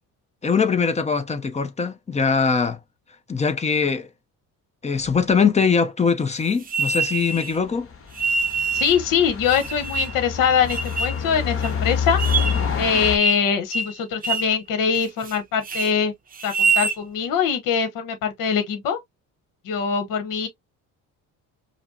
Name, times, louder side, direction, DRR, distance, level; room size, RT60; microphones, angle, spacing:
voice 1, 0.4-2.8 3.3-4.1 4.8-7.9, left 5 dB, 20° left, 0.6 m, -22 dB
sound 1, 5.0-5.1 7.7-13.2, left 6 dB, 40° left, 1.1 m, -27 dB
sound 2, 6.7-7.5 8.2-9.0 9.5-10.2 10.7-11.2 11.6-11.7 12.2-12.6 12.9-13.5 13.7-13.9 14.2-14.5 14.9-15.4 15.6-15.9 16.4-17.0, right 4 dB, 25° right, 0.6 m, -24 dB
voice 2, 8.7-12.2 12.8-16.1 16.4-19.0 19.6-20.5, left 7 dB, 65° left, 1.1 m, -23 dB
5.1 x 2.1 x 2.7 m
cardioid pair, 120°, 34 cm